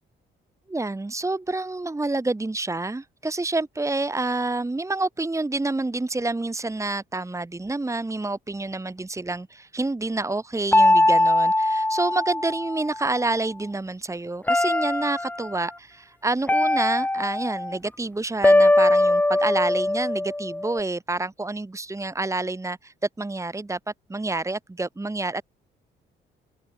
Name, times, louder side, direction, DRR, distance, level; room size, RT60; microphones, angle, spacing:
voice 1, 0.7-23.8 24.1-25.4, right 2 dB, 15° right, 2.3 m, -28 dB
sound 1, 10.7-13.1 14.5-15.5 16.5-17.8 18.4-20.8, left 1 dB, 10° left, 0.9 m, -21 dB
cardioid pair, 90°, 20 cm